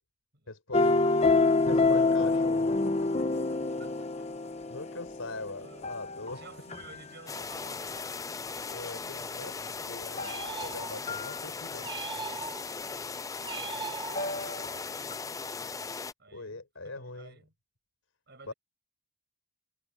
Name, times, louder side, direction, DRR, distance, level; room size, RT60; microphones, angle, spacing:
voice 1, 0.5-1.0 1.6-3.1 3.8-3.9 4.7-6.4 8.7-10.2 10.6-11.9 16.3-17.3 18.5-18.6, left 2 dB, 85° left, 4.7 m, -42 dB
sound 1, 0.7-7.0 10.2-10.8 11.1-11.4 14.2-14.8 15.1-15.2, left 3 dB, 30° left, 0.9 m, -27 dB
voice 2, 3.6-4.3 5.6-5.9 6.3-8.4 13.4-14.9 16.2-17.5 18.3-18.5, right 4 dB, 55° right, 7.7 m, -53 dB
sound 2, 7.3-16.1, left 4 dB, 15° left, 0.4 m, -38 dB
sound 3, 10.2-11.2 11.8-12.9 13.4-14.6, right 4 dB, 20° right, 1.3 m, -40 dB
head